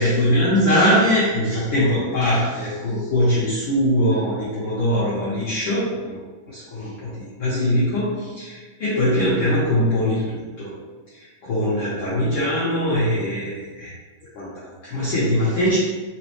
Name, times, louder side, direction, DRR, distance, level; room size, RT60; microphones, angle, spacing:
voice 1, 0.0-6.2 6.5-10.7 11.1-13.9 14.3-15.8, equal, 65° left, -9 dB, 1.4 m, -22 dB
4.1 x 3.9 x 3.1 m, 1.3 s
omnidirectional pair, 3.4 m